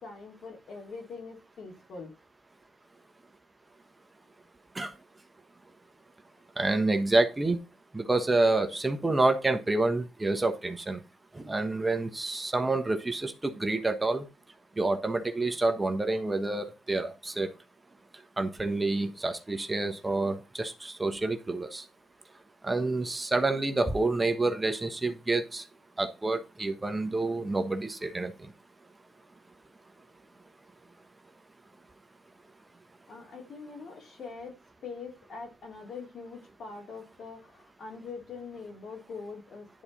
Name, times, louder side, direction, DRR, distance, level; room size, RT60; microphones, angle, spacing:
voice 1, 0.0-2.1 33.1-39.8, left 4 dB, 60° left, 1 dB, 3.0 m, -43 dB
voice 2, 6.6-7.6 7.9-11.0 11.3-14.3 14.8-17.5 18.4-21.8 22.6-25.6 26.0-28.3, right 2 dB, 20° right, 7 dB, 1.1 m, -28 dB
10.5 x 4.3 x 4.0 m, 0.31 s
cardioid pair, 90°, 0 cm